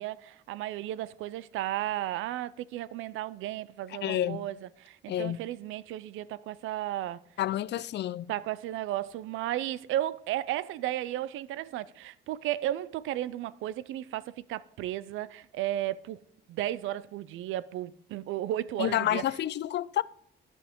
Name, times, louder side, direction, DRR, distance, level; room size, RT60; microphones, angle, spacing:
voice 1, 0.0-7.2 8.3-16.2 16.5-19.2, right 13 dB, 85° right, 0.5 m, -34 dB
voice 2, 4.0-4.4 5.1-5.4 7.4-8.3 18.8-20.0, left 12 dB, 60° left, 0.4 m, -29 dB
13.5 x 5.4 x 3.6 m
cardioid pair, 90°, 20 cm